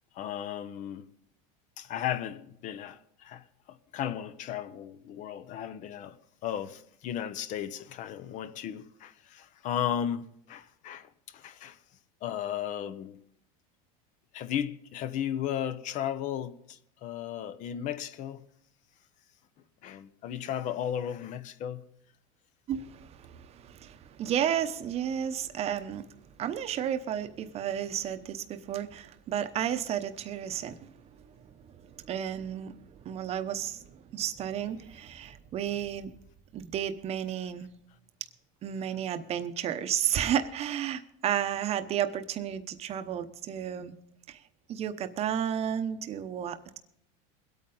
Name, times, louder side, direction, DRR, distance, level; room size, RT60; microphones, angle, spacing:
voice 1, 0.1-1.1 1.8-11.8 12.2-13.2 14.3-18.4 19.8-21.9, left 10 dB, 40° left, 0.8 m, -35 dB
voice 2, 22.7-26.1 26.4-30.9 31.8-36.2 36.5-37.7 38.6-43.9 44.3-44.4 44.7-46.8, right 9 dB, 35° right, 0.9 m, -32 dB
22.5 x 8.7 x 3.9 m
supercardioid pair, 135°, 19 cm